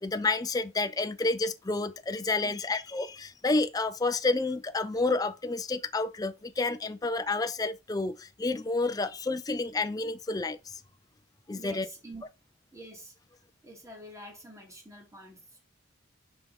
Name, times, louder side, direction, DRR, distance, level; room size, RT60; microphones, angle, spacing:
voice 1, 0.0-10.7 11.5-11.9, left 3 dB, 20° left, 0.4 m, -30 dB
voice 2, 11.5-12.3 12.7-13.1 13.6-15.6, right 1 dB, 15° right, 2.3 m, -47 dB
5.5 x 5.4 x 4.1 m
head